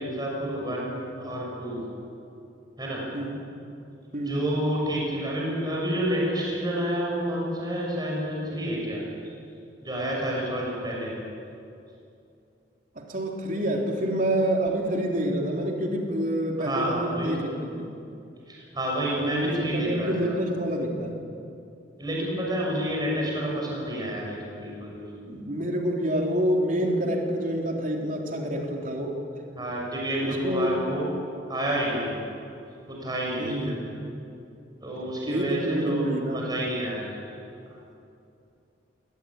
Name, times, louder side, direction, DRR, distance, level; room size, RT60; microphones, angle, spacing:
voice 1, 0.0-1.9 2.8-3.1 4.2-9.0 9.8-11.1 16.6-17.5 18.5-20.1 22.0-25.1 29.6-31.1 31.5-32.1 32.9-33.8 34.8-37.2 37.7-37.8, equal, 25° right, -3 dB, 6.8 m, -29 dB
voice 2, 4.1-4.6 13.0-17.9 19.2-21.2 25.3-29.2 30.2-30.8 33.4-34.0 35.3-36.4, right 1 dB, 45° right, 0 dB, 3.6 m, -27 dB
22.0 x 20.0 x 9.9 m, 2.6 s
head